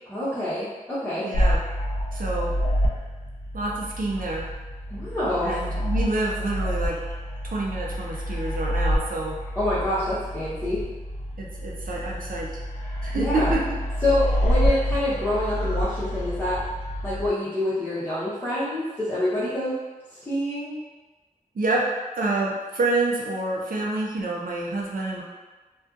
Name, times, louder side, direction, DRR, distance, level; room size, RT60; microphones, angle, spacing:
voice 1, 0.1-1.3 4.9-5.5 9.6-10.8 13.1-13.6 14.0-16.6 17.0-19.7 20.3-20.8, left 1 dB, 15° left, -14 dB, 0.8 m, -26 dB
voice 2, 1.2-1.6 2.1-2.5 3.5-4.5 5.4-7.0 7.5-9.4 11.4-12.5 13.0-13.6 21.5-21.8 22.2-25.2, right 2 dB, 80° right, -3 dB, 0.5 m, -27 dB
sound 1, 1.3-17.3, equal, 85° left, 0.5 m, -28 dB
2.5 x 2.3 x 2.4 m, 1.2 s
wide cardioid pair, 75°, 14 cm